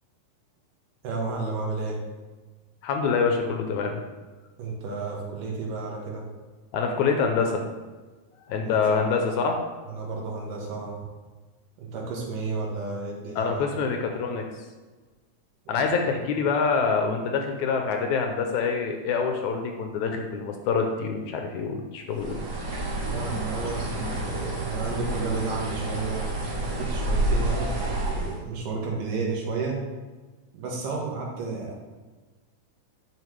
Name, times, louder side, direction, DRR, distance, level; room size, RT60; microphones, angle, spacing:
voice 1, 1.0-2.0 4.6-6.2 8.6-8.8 9.1-9.4 9.8-11.0 11.8-13.6 15.7-15.8 16.1-16.2 23.0-26.2 26.6-29.8 30.5-31.8, right 4 dB, 80° right, -2 dB, 3.0 m, -32 dB
voice 2, 2.8-4.0 6.7-7.6 8.4-9.6 13.4-14.4 15.7-22.4, left 5 dB, 75° left, 3 dB, 1.9 m, -26 dB
Bird, 22.1-28.4, right 2 dB, 40° right, 1.8 m, -29 dB
9.3 x 5.7 x 3.3 m, 1.3 s
omnidirectional pair, 3.7 m